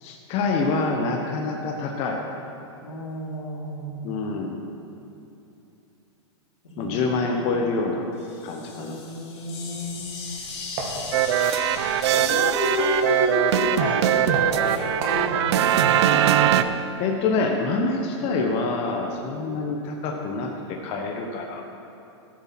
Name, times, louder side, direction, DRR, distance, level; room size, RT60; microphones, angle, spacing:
voice 1, 0.0-2.2 4.0-4.6 6.8-8.1 8.4-9.0 17.0-21.6, left 3 dB, 40° left, 1 dB, 1.1 m, -26 dB
voice 2, 2.8-4.1 6.6-7.4 8.7-10.1 12.1-16.5 18.3-18.5 19.4-19.5, left 1 dB, 85° left, -2 dB, 2.6 m, -31 dB
sound 1, 8.1-14.0, left 4 dB, 60° left, 2.8 m, -39 dB
sound 2, 9.7-15.3, right 3 dB, 50° right, 2.2 m, -37 dB
sound 3, 11.1-16.6, right 10 dB, 65° right, 0.6 m, -21 dB
13.5 x 7.5 x 5.9 m, 2.8 s
hypercardioid pair, 120°, 16 cm